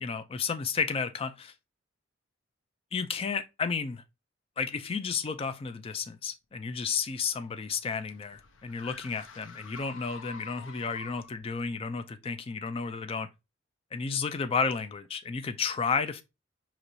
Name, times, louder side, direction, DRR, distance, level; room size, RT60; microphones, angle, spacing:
voice 1, 0.0-1.5 2.9-4.0 4.6-13.3 13.9-16.2, left 5 dB, 30° left, 0.3 m, -32 dB
sound 1, 7.0-11.5, left 4 dB, 70° left, 0.6 m, -48 dB
4.6 x 2.9 x 2.6 m
head